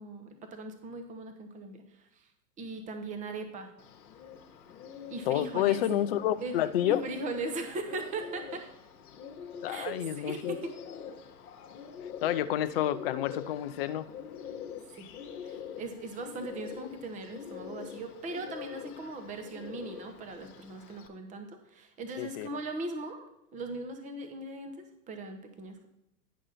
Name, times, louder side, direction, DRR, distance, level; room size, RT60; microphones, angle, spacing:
voice 1, 0.0-2.3 2.6-3.7 5.1-5.8 6.4-6.6 6.8-8.7 9.7-10.7 14.9-15.1 15.4-25.9, right 2 dB, 15° right, 6 dB, 0.8 m, -39 dB
Bird, 3.8-21.1, left 8 dB, 65° left, 1.2 m, -45 dB
voice 2, 5.3-7.0 9.6-10.5 12.2-14.1 22.2-22.5, left 12 dB, 40° left, 12 dB, 0.4 m, -29 dB
10.0 x 6.0 x 4.0 m, 0.83 s
figure-of-eight pair, 105°, 48 cm